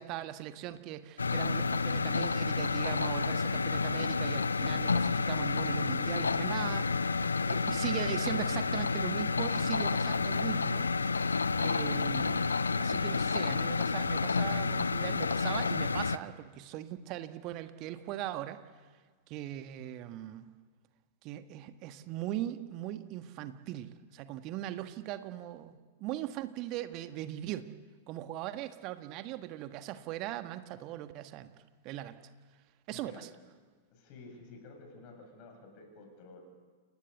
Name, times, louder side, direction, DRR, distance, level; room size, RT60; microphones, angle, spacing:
voice 1, 0.0-7.0 7.5-10.9 11.6-18.6 19.3-20.5 21.2-27.7 28.1-31.5 31.8-32.2 32.9-33.3, right 13 dB, 40° right, 10 dB, 1.4 m, -39 dB
sound 1, 1.2-16.2, left 4 dB, 75° left, 0.8 m, -30 dB
voice 2, 32.9-33.3 33.9-36.4, left 3 dB, 40° left, 3 dB, 7.7 m, -52 dB
28.5 x 18.0 x 8.1 m, 1.5 s
figure-of-eight pair, 95°, 0 cm